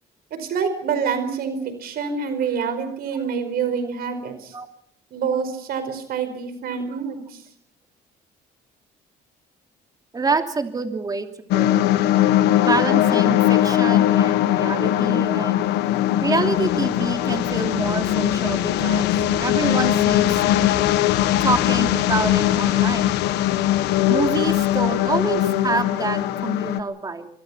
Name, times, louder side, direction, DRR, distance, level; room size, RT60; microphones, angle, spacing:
voice 1, 0.3-4.5 5.1-7.4, right 6 dB, 65° right, 10 dB, 4.9 m, -26 dB
voice 2, 10.1-11.3 11.5-11.8 12.6-15.6 16.2-19.1 19.4-20.8 21.4-23.2 24.1-27.3, right 3 dB, 20° right, 5 dB, 2.9 m, -27 dB
sound 1, 11.5-26.8, left 12 dB, 85° left, 1.4 m, -20 dB
25.5 x 22.5 x 5.8 m, 0.66 s
cardioid pair, 110°, 17 cm